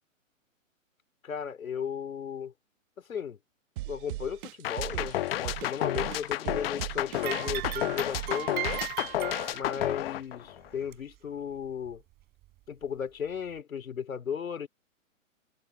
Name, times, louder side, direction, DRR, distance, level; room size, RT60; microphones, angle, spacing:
voice 1, 1.2-2.5 3.1-3.4 3.9-8.6 9.5-12.0 12.7-14.7, left 7 dB, 85° left, 3.1 m, -35 dB
sound 1, 3.8-9.1, right 17 dB, 40° right, 1.6 m, -38 dB
sound 2, 4.6-10.8, left 14 dB, 45° left, 1.6 m, -31 dB
sound 3, 7.1-10.0 10.9-11.0 11.9-12.0 12.8-12.9, right 18 dB, 25° right, 4.1 m, -37 dB
hypercardioid pair, 145°, 40 cm